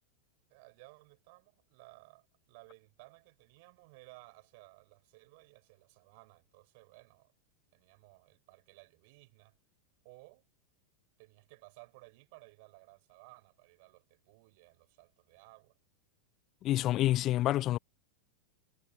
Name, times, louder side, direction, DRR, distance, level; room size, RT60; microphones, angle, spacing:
voice 1, 0.5-7.3 7.7-9.6 10.0-10.5 11.2-15.8, right 27 dB, 50° right, 6.3 m, -58 dB
voice 2, 16.6-17.8, left 14 dB, 35° left, 0.5 m, -28 dB
figure-of-eight pair, 90°, 0 cm